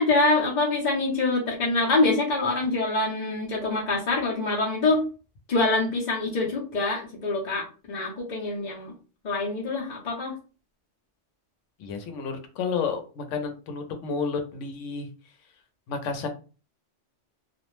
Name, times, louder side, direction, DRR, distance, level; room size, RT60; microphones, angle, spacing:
voice 1, 0.0-5.0 5.5-8.9 9.2-10.3, left 2 dB, 45° left, -4 dB, 0.7 m, -25 dB
voice 2, 11.8-15.1 15.9-16.3, left 5 dB, 85° left, 6 dB, 1.0 m, -31 dB
2.4 x 2.0 x 3.0 m, 0.35 s
omnidirectional pair, 1.2 m